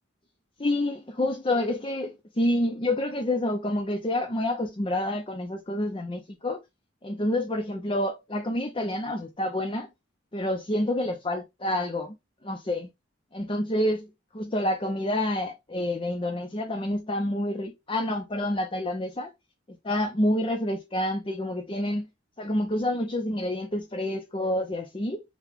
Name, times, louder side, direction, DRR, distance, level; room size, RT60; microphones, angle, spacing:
voice 1, 0.6-6.6 7.0-9.9 10.3-12.1 12.4-12.9 13.3-14.1 14.3-19.3 19.8-22.1 22.4-25.2, left 1 dB, 25° left, 0.6 m, -28 dB
5.8 x 2.3 x 3.6 m
head